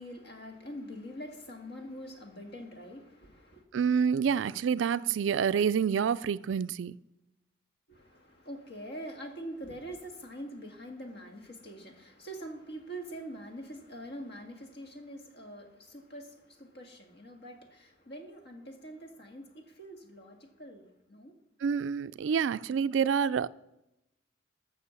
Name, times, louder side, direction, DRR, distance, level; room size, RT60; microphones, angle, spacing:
voice 1, 0.0-3.6 7.9-21.3, equal, 60° left, 1.8 m, -44 dB
voice 2, 3.7-7.0 21.6-23.5, right 7 dB, 70° right, 0.3 m, -28 dB
13.0 x 6.5 x 6.8 m
head